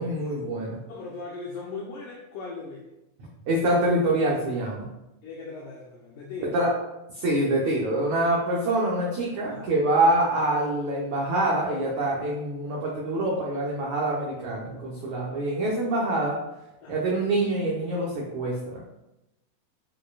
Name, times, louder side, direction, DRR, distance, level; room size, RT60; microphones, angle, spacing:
voice 1, 0.0-0.8 3.5-4.9 6.5-6.7 7.1-16.4 16.9-18.8, right 1 dB, 90° right, -4 dB, 1.6 m, -25 dB
voice 2, 0.9-2.9 5.2-6.5 9.5-9.7 16.8-17.1, left 4 dB, 90° left, -2 dB, 1.8 m, -39 dB
9.1 x 5.0 x 2.3 m, 0.92 s
omnidirectional pair, 4.7 m